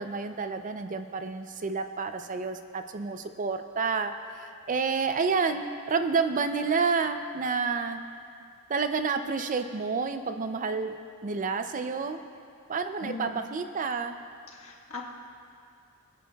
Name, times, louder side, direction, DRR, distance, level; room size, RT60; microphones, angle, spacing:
voice 1, 0.0-8.0 8.7-10.9 11.2-12.2 12.7-14.2, right 5 dB, 35° right, 8 dB, 0.5 m, -29 dB
voice 2, 13.0-13.4 14.5-15.0, left 3 dB, 65° left, -2 dB, 1.5 m, -39 dB
21.5 x 10.0 x 2.3 m, 2.3 s
head